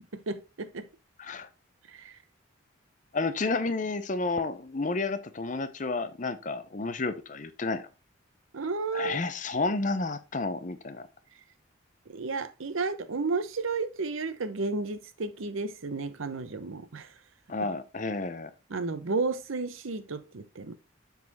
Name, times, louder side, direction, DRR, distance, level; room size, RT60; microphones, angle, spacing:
voice 1, 0.1-0.9 1.9-2.2 8.5-9.2 12.1-17.1 18.7-20.7, right 3 dB, 85° right, 0.8 m, -32 dB
voice 2, 3.1-7.9 8.9-11.1 17.5-18.5, left 3 dB, 40° left, 0.6 m, -31 dB
7.2 x 4.0 x 4.2 m
head